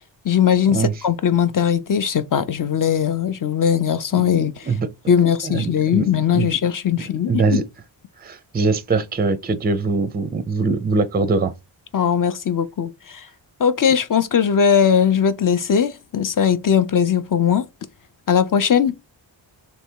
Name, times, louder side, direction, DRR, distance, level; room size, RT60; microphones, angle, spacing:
voice 1, 0.2-4.6 5.1-7.4 11.9-13.2 13.6-17.6 18.3-18.9, left 8 dB, 45° left, 0.5 m, -19 dB
voice 2, 5.4-6.1 6.3-6.5 7.3-7.6 8.2-11.5, right 4 dB, 20° right, 0.4 m, -22 dB
3.4 x 3.1 x 4.4 m
wide cardioid pair, 125°, 46 cm